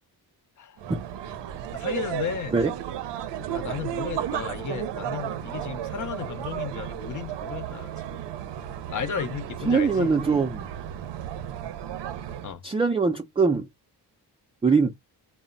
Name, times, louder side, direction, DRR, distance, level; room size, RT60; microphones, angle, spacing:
sound 1, 0.8-12.6, right 10 dB, 80° right, 0.5 m, -34 dB
voice 1, 1.7-2.6 3.5-8.2 8.9-10.1 12.4-12.6, left 8 dB, 50° left, 0.5 m, -34 dB
voice 2, 9.6-10.7 12.6-13.7 14.6-14.9, right 4 dB, 15° right, 0.3 m, -22 dB
2.1 x 2.0 x 3.6 m
cardioid pair, 115°, 41 cm